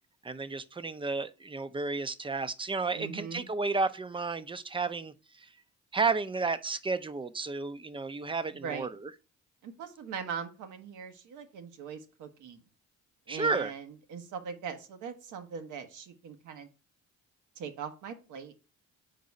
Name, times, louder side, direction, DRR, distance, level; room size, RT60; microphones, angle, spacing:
voice 1, 0.2-5.1 5.9-8.9 13.3-13.7, right 4 dB, 15° right, 0.5 m, -32 dB
voice 2, 2.9-3.5 8.5-8.9 9.6-12.6 13.3-16.7 17.6-18.5, right 7 dB, 80° right, 1.1 m, -41 dB
4.7 x 3.9 x 5.2 m
cardioid pair, 90°, 30 cm